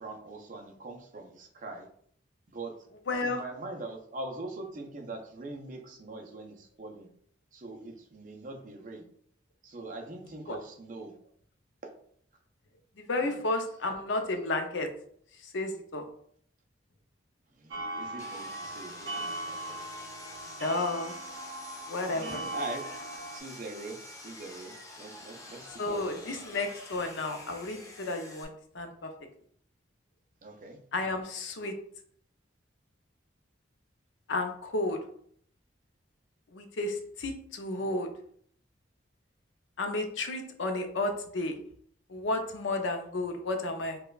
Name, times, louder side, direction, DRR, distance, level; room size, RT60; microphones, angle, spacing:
voice 1, 0.0-1.9 2.5-2.7 3.2-7.1 7.5-9.1 9.6-11.1 13.2-13.4 17.6-19.9 22.1-22.8 23.3-26.4 30.4-30.8, right 2 dB, 45° right, 2 dB, 0.5 m, -42 dB
voice 2, 3.1-3.4 10.5-10.6 13.1-14.9 15.5-16.0 20.6-21.1 21.9-22.5 25.8-29.1 30.9-31.7 34.3-35.0 36.5-38.1 39.8-41.6 42.1-44.0, left 2 dB, 75° left, 5 dB, 0.5 m, -32 dB
sound 1, 17.7-23.4, right 2 dB, 80° right, 0.8 m, -39 dB
Sawing, 18.2-28.4, left 2 dB, 15° left, 0.4 m, -48 dB
4.8 x 2.2 x 2.3 m, 0.62 s
head